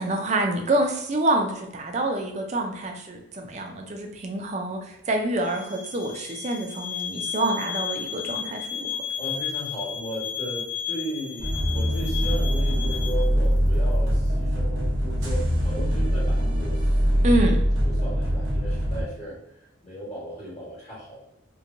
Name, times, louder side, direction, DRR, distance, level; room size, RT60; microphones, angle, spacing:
voice 1, 0.0-8.9 17.2-17.6, right 2 dB, 35° right, 3 dB, 0.4 m, -26 dB
sound 1, 5.4-13.1, left 9 dB, 60° left, 0.6 m, -33 dB
voice 2, 9.2-16.9 17.8-19.4 19.8-21.3, equal, 35° left, -7 dB, 1.2 m, -36 dB
sound 2, 11.4-19.0, equal, 90° right, 0.9 m, -23 dB
2.8 x 2.2 x 2.5 m, 0.82 s
head